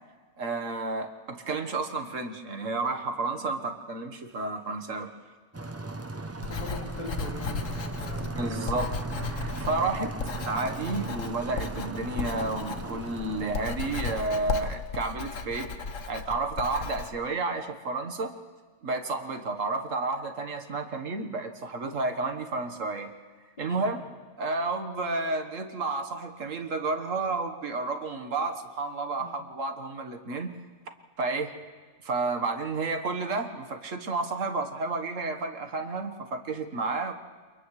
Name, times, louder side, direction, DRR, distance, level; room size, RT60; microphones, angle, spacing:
voice 1, 0.4-5.1 8.3-8.9 9.2-15.7 16.1-18.3 18.8-23.1 23.6-24.0 24.4-30.5 31.2-31.5 32.0-37.1, right 3 dB, 85° right, 5 dB, 1.8 m, -31 dB
sound 1, 5.5-14.8, right 2 dB, 20° right, 0.4 m, -37 dB
Writing, 6.3-17.1, left 4 dB, 85° left, 1.4 m, -36 dB
voice 2, 6.4-8.8 23.7-23.9 29.2-29.4, left 2 dB, 30° left, -2 dB, 3.2 m, -43 dB
29.5 x 28.5 x 3.3 m, 1.5 s
omnidirectional pair, 1.3 m